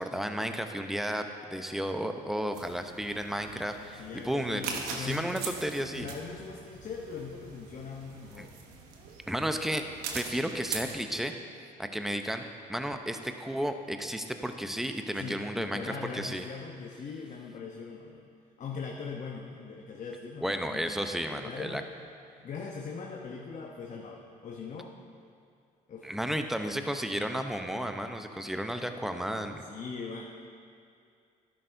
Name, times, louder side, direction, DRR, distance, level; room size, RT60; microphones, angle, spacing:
voice 1, 0.0-6.1 8.4-8.5 9.3-9.8 10.1-11.3 11.8-16.5 20.4-21.8 26.0-29.7, equal, ahead, 6 dB, 0.7 m, -33 dB
sound 1, 2.5-10.9, right 5 dB, 90° right, 1.0 m, -42 dB
voice 2, 4.0-5.4 5.8-8.5 15.1-18.3 18.6-21.9 22.4-24.9 25.9-26.4 29.6-30.3, left 5 dB, 50° left, 0 dB, 0.9 m, -41 dB
12.0 x 10.5 x 2.7 m, 2.4 s
supercardioid pair, 75°, 16 cm